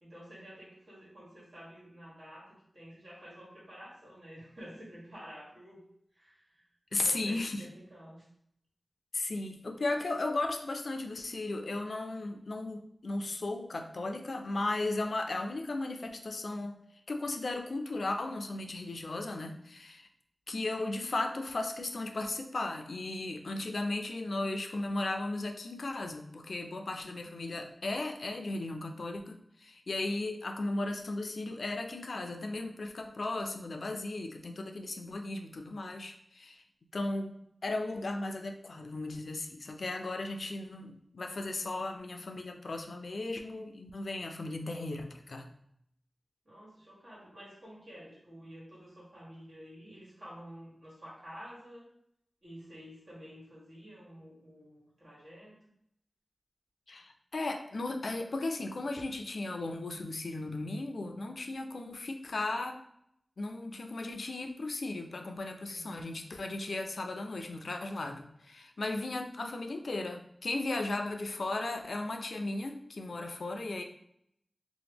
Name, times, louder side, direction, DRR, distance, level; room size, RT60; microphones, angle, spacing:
voice 1, 0.0-5.8 6.1-6.6 7.0-8.3 46.4-51.9 52.4-55.6 65.7-66.1, equal, 70° right, -6 dB, 1.4 m, -50 dB
voice 2, 6.9-7.7 9.1-16.8 17.1-20.1 20.5-36.6 36.9-45.5 56.9-62.8 63.4-73.8, left 2 dB, 85° left, 5 dB, 0.4 m, -36 dB
2.9 x 2.0 x 3.4 m, 0.72 s
cardioid pair, 40°, 0 cm